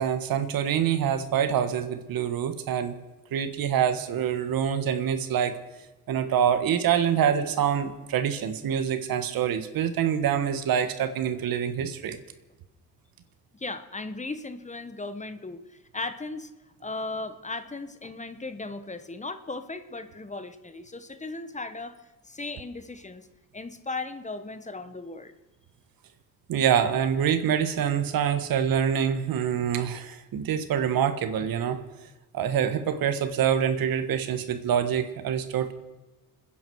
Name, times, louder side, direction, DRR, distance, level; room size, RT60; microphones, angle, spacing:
voice 1, 0.0-2.9 3.3-5.5 6.1-12.2 26.5-31.8 32.3-35.7, right 8 dB, 80° right, 10 dB, 1.4 m, -25 dB
voice 2, 13.5-15.6 15.9-16.5 16.8-22.0 22.3-23.3 23.5-25.3, left 3 dB, 20° left, 11 dB, 1.1 m, -36 dB
28.0 x 10.5 x 4.7 m, 1.1 s
cardioid pair, 85°, 35 cm